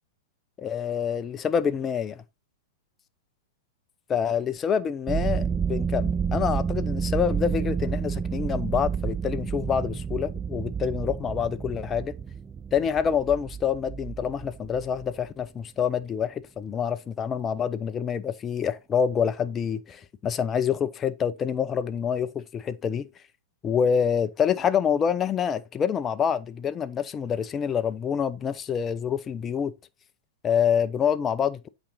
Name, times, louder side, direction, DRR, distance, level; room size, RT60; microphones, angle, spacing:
voice 1, 0.6-2.2 4.1-12.1 12.7-23.1 23.6-29.7 30.4-31.7, left 7 dB, 20° left, 0.7 m, -27 dB
sound 1, 5.1-15.2, right 6 dB, 15° right, 0.4 m, -30 dB
8.6 x 5.3 x 4.0 m
figure-of-eight pair, 100°, 0 cm